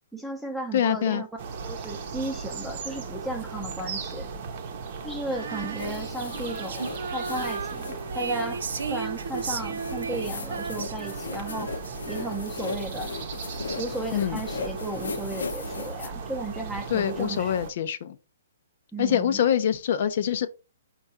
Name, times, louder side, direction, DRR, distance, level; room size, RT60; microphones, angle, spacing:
voice 1, 0.1-1.3 1.6-4.3 5.0-8.6 8.9-11.7 12.1-13.1 13.8-17.5 18.9-19.4, right 1 dB, ahead, 0.6 m, -35 dB
voice 2, 0.7-1.2 14.1-14.4 16.9-18.2 19.0-20.5, left 9 dB, 50° left, 0.4 m, -25 dB
sound 1, 1.4-17.7, right 5 dB, 40° right, 0.7 m, -37 dB
Female singing, 5.3-12.7, right 5 dB, 80° right, 0.4 m, -35 dB
sound 2, 5.8-16.1, left 4 dB, 90° left, 0.8 m, -38 dB
4.5 x 2.3 x 4.1 m
hypercardioid pair, 155°, 0 cm